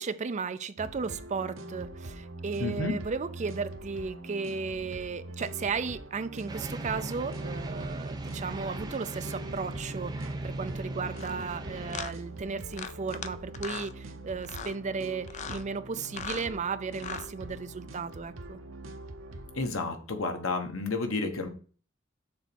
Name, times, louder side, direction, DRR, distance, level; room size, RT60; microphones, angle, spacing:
voice 1, 0.0-18.6, right 5 dB, 35° right, 0.5 m, -35 dB
sound 1, 0.8-19.7, right 2 dB, 75° right, 0.8 m, -43 dB
voice 2, 2.6-2.9 19.6-21.5, left 3 dB, 90° left, 1.2 m, -31 dB
sound 2, 6.5-12.0, right 1 dB, 20° right, 0.9 m, -38 dB
sound 3, 11.1-11.3 11.9-12.1 12.7-13.3 13.5-13.9 14.4-14.8 15.3-15.6 16.0-16.5 16.9-17.3, left 7 dB, 35° left, 0.5 m, -38 dB
6.7 x 4.0 x 6.1 m
head